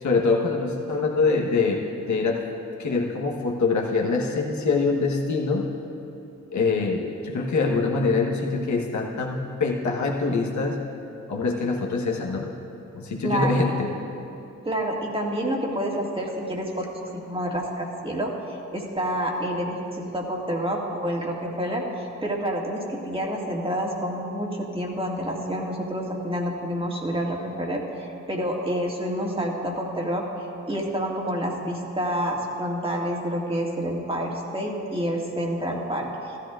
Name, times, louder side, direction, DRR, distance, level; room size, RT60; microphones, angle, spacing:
voice 1, 0.0-2.4 2.8-5.7 6.5-10.8 11.3-12.5 12.9-13.9, left 4 dB, 75° left, 0 dB, 1.1 m, -24 dB
voice 2, 13.2-13.7 14.6-36.4, equal, 20° right, -2 dB, 1.9 m, -28 dB
15.0 x 13.0 x 2.4 m, 2.8 s
cardioid pair, 65°, 29 cm